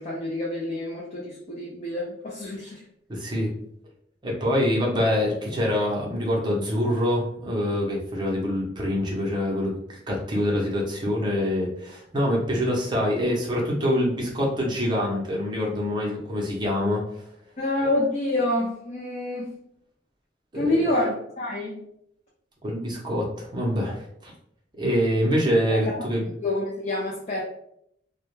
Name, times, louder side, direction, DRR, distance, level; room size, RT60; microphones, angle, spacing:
voice 1, 0.0-2.8 17.6-19.5 20.5-21.8 25.7-26.1 26.4-27.4, left 1 dB, 40° left, -4 dB, 0.5 m, -27 dB
voice 2, 3.1-3.5 4.2-17.0 20.5-20.7 22.6-24.3 24.8-26.3, equal, 25° right, -3 dB, 0.6 m, -25 dB
2.2 x 2.1 x 3.0 m, 0.72 s
head